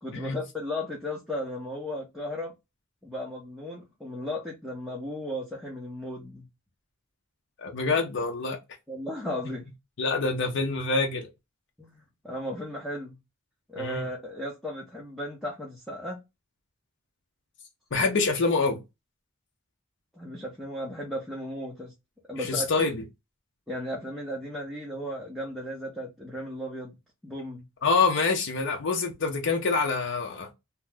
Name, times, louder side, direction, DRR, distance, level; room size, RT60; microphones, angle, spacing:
voice 1, 0.0-2.5 3.0-6.5 8.9-9.7 11.8-13.2 13.7-16.2 20.1-21.9 22.3-22.9 23.7-26.9 27.2-27.7, left 1 dB, ahead, 0.6 m, -35 dB
voice 2, 7.6-8.6 10.0-11.3 13.7-14.0 17.9-18.8 22.4-23.0 27.8-30.5, left 4 dB, 60° left, 0.6 m, -26 dB
2.9 x 2.0 x 3.4 m
head